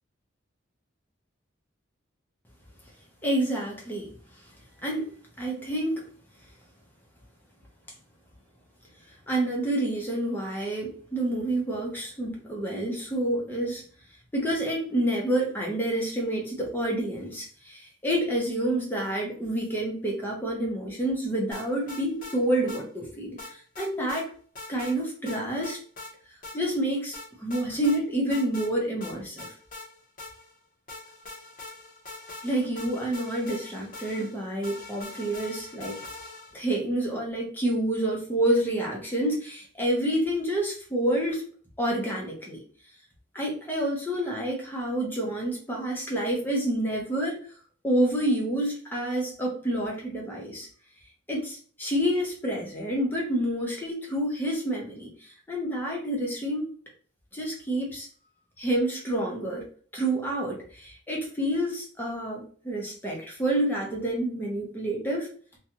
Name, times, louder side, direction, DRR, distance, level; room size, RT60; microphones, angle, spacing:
voice 1, 3.2-4.1 4.8-6.1 9.3-13.8 14.3-24.3 24.7-25.8 26.5-29.5 32.4-35.9 36.5-41.4 41.8-42.6 43.3-47.4 47.8-50.7 51.3-56.7 57.3-58.1 58.6-59.6 59.9-65.3, right 1 dB, 10° left, -2 dB, 0.7 m, -28 dB
sound 1, 21.5-22.4 22.7-22.8 23.4-24.2 24.5-25.0 25.3-26.1 26.4-26.6 27.1-28.0 28.3-28.7 29.0-30.6 30.9-36.6, left 2 dB, 40° left, 0.8 m, -42 dB
2.5 x 2.3 x 2.8 m, 0.44 s
head